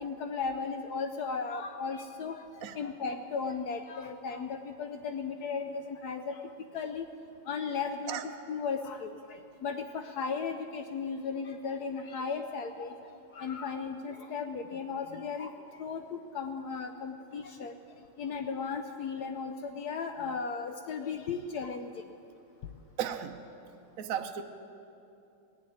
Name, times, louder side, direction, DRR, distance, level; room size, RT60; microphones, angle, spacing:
voice 1, 0.0-2.4 2.8-6.4 6.7-7.0 7.5-12.9 13.3-15.5 15.8-17.7 18.2-21.9, left 5 dB, 80° left, 6 dB, 0.8 m, -36 dB
voice 2, 23.0-23.5 24.0-24.4, right 9 dB, 70° right, 6 dB, 0.8 m, -35 dB
19.0 x 7.0 x 9.4 m, 2.7 s
omnidirectional pair, 2.4 m